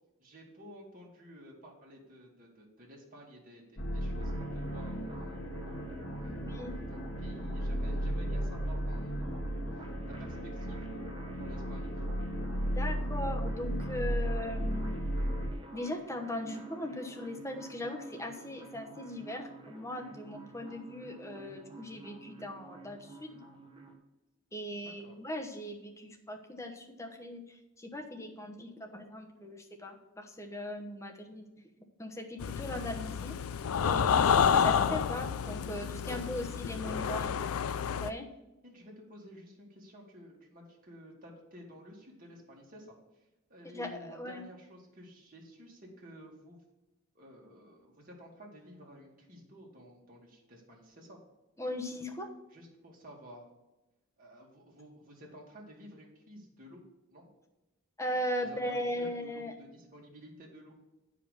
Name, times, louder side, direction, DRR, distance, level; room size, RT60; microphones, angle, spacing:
voice 1, 0.2-5.4 6.2-9.5 9.7-10.8 11.4-12.1 24.8-25.2 36.8-37.4 38.6-43.0 43.5-46.6 47.1-51.2 52.5-53.5 54.2-56.8 57.1-57.3 58.4-60.7, equal, 40° right, -2 dB, 2.3 m, -52 dB
sound 1, 3.8-15.5, equal, 60° left, 1.3 m, -35 dB
sound 2, 4.2-23.9, right 3 dB, 25° right, 1.1 m, -49 dB
voice 2, 6.3-6.7 12.7-15.0 15.7-23.4 24.5-31.5 32.0-33.3 33.8-37.2 38.0-38.3 43.7-44.4 51.6-52.3 58.0-59.5, left 1 dB, 15° left, 2 dB, 1.0 m, -39 dB
sound 3, 32.4-38.1, left 7 dB, 80° left, 0.4 m, -29 dB
8.6 x 5.1 x 6.7 m, 0.98 s
head